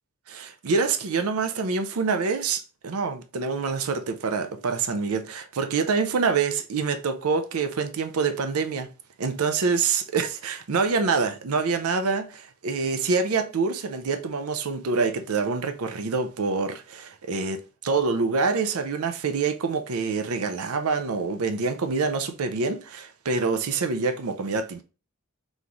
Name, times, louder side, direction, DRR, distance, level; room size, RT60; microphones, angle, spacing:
voice 1, 0.3-8.9 9.2-24.8, right 4 dB, 85° right, 0.5 m, -26 dB
3.5 x 3.0 x 3.8 m
head